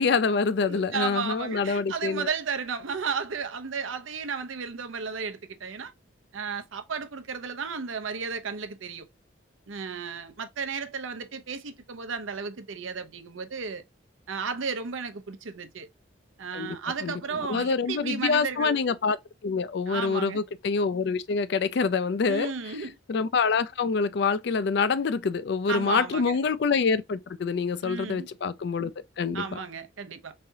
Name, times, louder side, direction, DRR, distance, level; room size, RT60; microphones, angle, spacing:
voice 1, 0.0-2.3 16.5-16.8 17.0-17.2 17.5-19.2 19.4-22.5 23.1-28.9 29.2-29.6, left 5 dB, 55° left, 0.4 m, -26 dB
voice 2, 0.6-5.9 6.3-9.1 9.7-13.8 14.3-15.9 16.4-18.8 19.9-20.4 22.2-23.0 25.7-26.4 27.8-28.3 29.3-30.3, right 5 dB, 80° right, 0.7 m, -34 dB
3.6 x 3.3 x 2.7 m
head